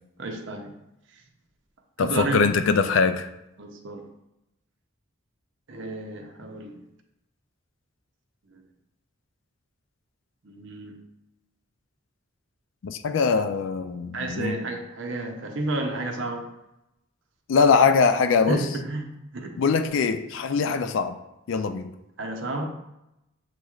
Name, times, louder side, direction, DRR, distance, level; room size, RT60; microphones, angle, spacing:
voice 1, 0.2-0.8 2.0-2.5 3.6-4.1 5.7-6.8 8.5-8.6 10.4-11.0 14.1-16.5 18.5-19.6 22.2-22.7, right 2 dB, 70° right, 3 dB, 0.6 m, -31 dB
voice 2, 2.0-3.3 12.8-14.6 17.5-18.7 19.6-21.2 21.5-21.9, left 5 dB, 70° left, 9 dB, 0.4 m, -22 dB
7.4 x 3.0 x 2.4 m, 0.88 s
head